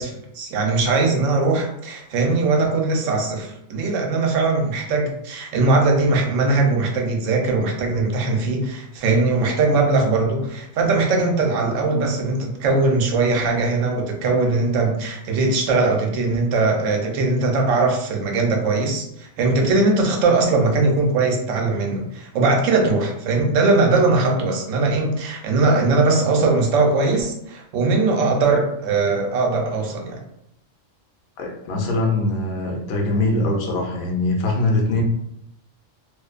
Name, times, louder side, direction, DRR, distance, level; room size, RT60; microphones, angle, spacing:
voice 1, 0.0-30.2, right 3 dB, 80° right, 2 dB, 0.9 m, -20 dB
voice 2, 31.4-35.0, left 2 dB, 65° left, 0 dB, 0.8 m, -22 dB
2.5 x 2.1 x 2.4 m, 0.76 s
omnidirectional pair, 1.3 m